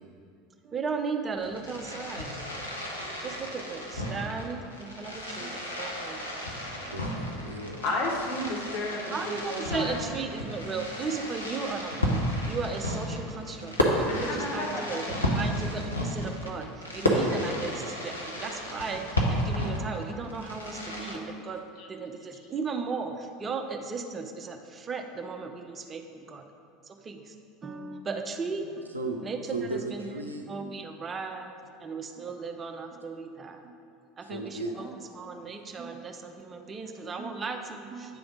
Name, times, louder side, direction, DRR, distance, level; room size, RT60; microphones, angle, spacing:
voice 1, 0.6-2.3 3.0-6.2 7.2-7.3 9.1-21.6 21.9-26.5 26.9-27.3 27.6-28.9 29.2-30.0 30.5-33.7 34.2-34.9 35.1-38.2, right 4 dB, 25° right, 5 dB, 0.5 m, -36 dB
Fireworks, 1.3-21.2, equal, 85° left, 0.7 m, -32 dB
voice 2, 6.9-7.9 28.9-29.2 29.5-30.5 34.2-34.7, right 2 dB, 85° right, 3 dB, 0.5 m, -35 dB
voice 3, 7.8-10.1 14.1-15.5 21.8-21.9 34.6-34.9, left 2 dB, 55° left, -2 dB, 1.2 m, -33 dB
9.0 x 3.5 x 4.8 m, 2.4 s
figure-of-eight pair, 75°, 0 cm